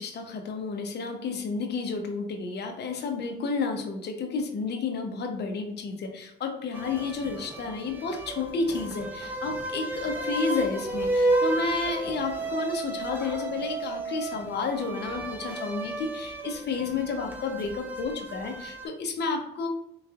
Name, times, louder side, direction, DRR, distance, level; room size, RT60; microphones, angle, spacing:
voice 1, 0.0-19.7, left 4 dB, 60° left, 3 dB, 0.8 m, -31 dB
sound 1, 6.7-18.9, right 2 dB, 10° right, 0.7 m, -32 dB
3.9 x 3.1 x 2.4 m, 0.78 s
cardioid pair, 90°, 20 cm